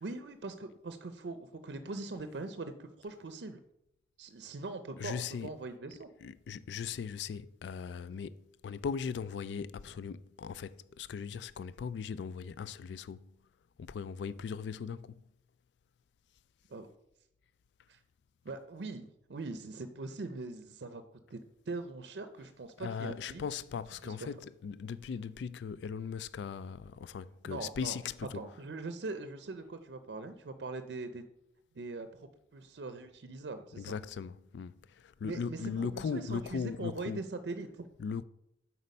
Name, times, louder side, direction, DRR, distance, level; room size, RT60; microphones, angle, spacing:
voice 1, 0.0-3.6 4.2-6.1 16.7-16.9 17.9-18.0 18.4-21.0 21.3-21.4 21.7-23.4 24.0-24.3 27.4-28.0 28.3-31.2 31.7-33.9 35.2-37.9, right 3 dB, 75° right, 0.5 m, -42 dB
voice 2, 5.0-5.5 6.2-13.3 13.8-15.2 22.8-28.4 33.8-37.2 38.0-38.2, left 6 dB, 75° left, 0.3 m, -39 dB
8.2 x 4.3 x 5.3 m
head